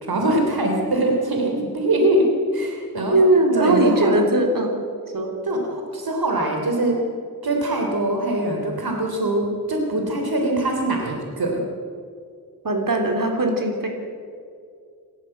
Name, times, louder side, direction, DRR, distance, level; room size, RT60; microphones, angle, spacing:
voice 1, 0.0-3.2 3.5-4.1 5.4-7.0 7.4-11.6, right 1 dB, 80° right, 2 dB, 3.3 m, -22 dB
voice 2, 3.1-4.8 5.1-5.3 12.6-13.9, right 1 dB, 65° right, 2 dB, 3.4 m, -19 dB
27.5 x 14.0 x 7.9 m, 2.3 s
wide cardioid pair, 90°, 36 cm